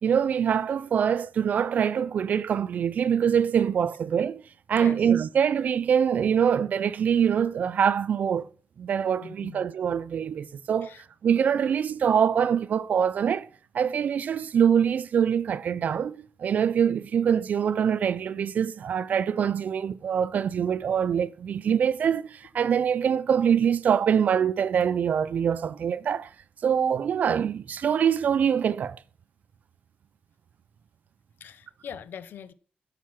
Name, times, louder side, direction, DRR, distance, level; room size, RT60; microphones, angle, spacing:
voice 1, 0.0-4.4 4.7-8.5 8.8-10.9 11.2-13.5 13.7-26.3 26.6-29.0, right 8 dB, 45° right, 0.4 m, -24 dB
voice 2, 9.2-9.6 10.8-11.0 31.4-32.5, left 8 dB, 65° left, 0.7 m, -42 dB
13.0 x 5.9 x 5.9 m
wide cardioid pair, 180°, 4 cm